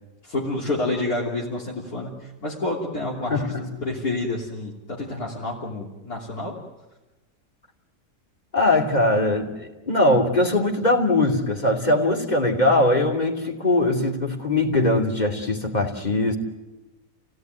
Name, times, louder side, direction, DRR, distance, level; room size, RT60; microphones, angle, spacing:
voice 1, 0.2-3.5 3.8-4.7 5.0-6.5, left 2 dB, 60° left, -5 dB, 3.7 m, -28 dB
voice 2, 3.3-3.7 8.5-16.4, left 2 dB, 25° left, 1 dB, 2.9 m, -21 dB
30.0 x 17.5 x 9.4 m, 1.1 s
omnidirectional pair, 1.8 m